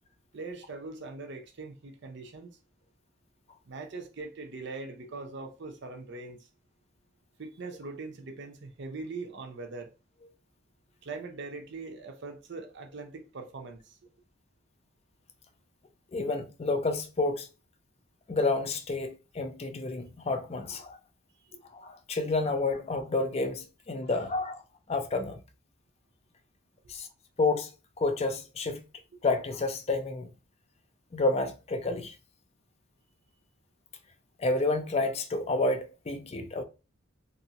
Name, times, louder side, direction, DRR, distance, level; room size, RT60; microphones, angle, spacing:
voice 1, 0.3-2.6 3.7-6.5 7.4-9.9 11.0-14.0 21.5-21.6, right 3 dB, 60° right, 0.6 m, -41 dB
voice 2, 16.1-17.5 18.3-21.0 21.7-24.6 24.9-25.4 26.9-27.1 27.4-27.7 28.0-28.8 29.2-30.3 31.1-32.2 34.4-36.6, left 3 dB, 30° left, 0.4 m, -29 dB
3.0 x 2.6 x 2.8 m
head